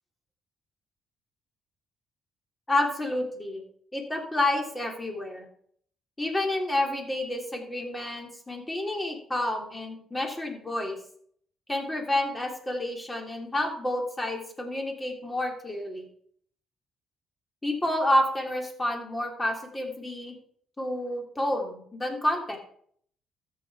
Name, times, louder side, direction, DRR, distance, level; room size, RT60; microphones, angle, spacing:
voice 1, 2.7-3.6 3.9-5.5 6.2-11.0 11.7-16.1 17.6-20.4 20.8-22.6, left 1 dB, 20° left, 2 dB, 3.1 m, -29 dB
13.5 x 7.8 x 4.8 m, 0.62 s
cardioid pair, 90°, 0 cm